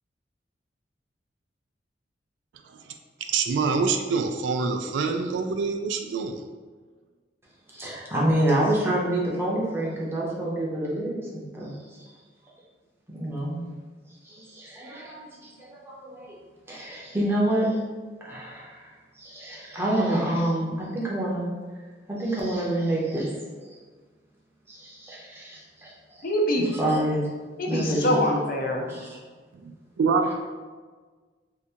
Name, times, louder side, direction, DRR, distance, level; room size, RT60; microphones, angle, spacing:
voice 1, 3.2-6.4 29.6-30.3, right 4 dB, 80° right, 6 dB, 0.3 m, -26 dB
voice 2, 7.7-12.0 13.1-13.6 14.2-16.4 16.7-17.7 18.2-18.8 19.2-21.5 22.2-23.3 24.7-26.3 26.7-27.2 27.7-28.2 28.8-29.2, right 1 dB, 15° right, -5 dB, 0.7 m, -27 dB
voice 3, 26.2-26.7 27.6-28.9, equal, 50° left, 1 dB, 0.5 m, -24 dB
2.7 x 2.5 x 3.5 m, 1.4 s
head